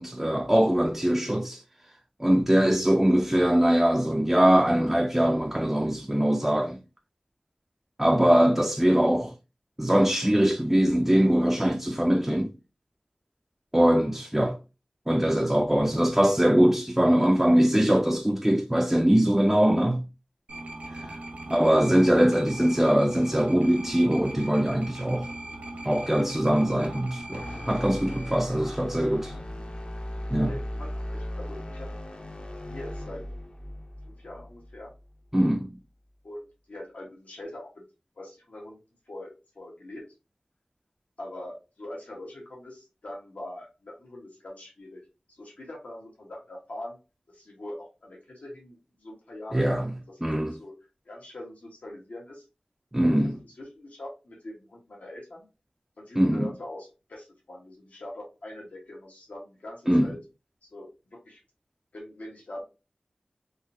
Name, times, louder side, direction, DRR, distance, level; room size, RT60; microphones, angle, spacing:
voice 1, 0.0-1.6 2.2-6.8 8.0-9.3 9.8-12.6 13.7-14.6 15.1-20.0 20.9-21.1 21.5-25.3 25.9-29.3 30.3-30.5 35.3-35.7 49.5-49.9 50.2-50.6 52.9-53.4 56.2-56.5 59.9-60.1, equal, 10° right, 0.3 m, -22 dB
sound 1, 20.5-28.4, right 1 dB, 75° right, 0.9 m, -39 dB
sound 2, 27.3-35.5, left 1 dB, 45° left, 0.6 m, -38 dB
voice 2, 28.5-28.9 30.5-31.9 32.6-33.2 34.0-34.9 36.2-37.8 38.2-38.8 39.1-40.0 41.2-45.0 45.3-47.0 47.3-49.8 50.1-50.2 50.5-50.7 51.0-52.4 53.4-55.5 56.0-60.2 60.7-61.4 61.9-62.6, left 1 dB, 85° left, 1.2 m, -42 dB
3.7 x 2.6 x 2.6 m
wide cardioid pair, 75°, 2 cm